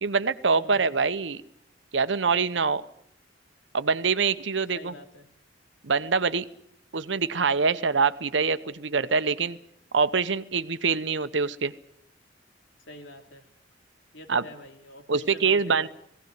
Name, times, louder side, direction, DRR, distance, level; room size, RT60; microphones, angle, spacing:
voice 1, 0.0-1.4 1.9-2.9 3.7-4.9 5.8-6.5 6.9-9.6 9.9-11.7 14.3-14.4 15.1-15.9, right 5 dB, 70° right, 13 dB, 0.9 m, -24 dB
voice 2, 0.5-0.8 4.7-5.3 12.9-13.5 14.1-15.9, left 1 dB, 90° left, 5 dB, 2.8 m, -46 dB
18.5 x 17.0 x 9.4 m, 0.71 s
head